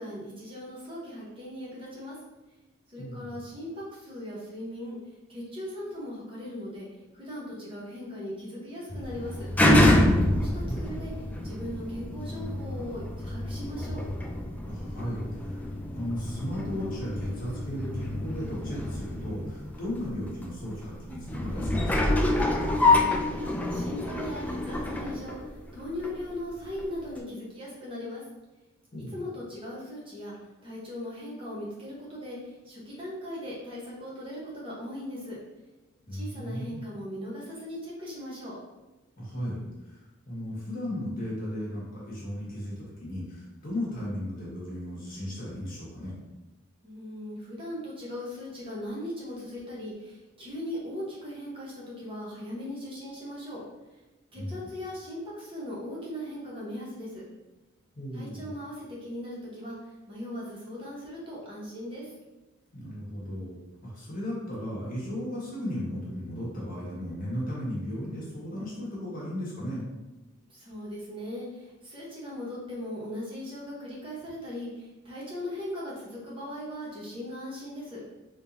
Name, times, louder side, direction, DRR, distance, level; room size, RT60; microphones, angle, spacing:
voice 1, 0.0-2.2 2.9-5.0 5.3-6.9 7.1-9.5 10.3-11.1 11.4-14.0 22.8-28.2 29.1-30.4 30.6-35.4 36.1-38.6 46.8-53.6 54.3-57.2 58.1-62.1 70.5-78.0, left 1 dB, 30° right, -6 dB, 1.1 m, -39 dB
voice 2, 3.0-3.4 10.2-11.0 14.6-15.7 15.9-22.2 28.9-29.2 36.1-36.8 39.2-46.1 54.3-54.7 57.9-58.5 62.7-69.8, equal, 45° left, -6 dB, 1.4 m, -36 dB
sound 1, 8.9-26.2 26.8-26.9, left 1 dB, 10° left, 0.3 m, -27 dB
4.0 x 3.7 x 2.7 m, 1.1 s
head